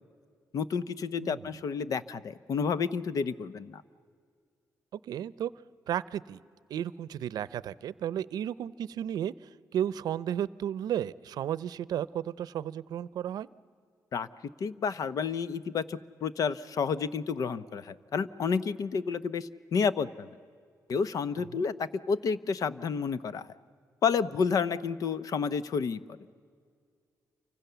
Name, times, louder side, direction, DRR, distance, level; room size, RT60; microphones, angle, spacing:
voice 1, 0.5-3.8 14.1-14.3 14.6-20.3 20.9-23.5 24.0-26.0, left 6 dB, 65° left, 16 dB, 0.9 m, -30 dB
voice 2, 1.2-1.5 4.9-5.5 5.9-6.4 6.7-9.3 9.7-13.5 21.5-21.7, right 10 dB, 85° right, 19 dB, 0.6 m, -33 dB
28.5 x 25.0 x 6.9 m, 2.1 s
cardioid pair, 110°, 7 cm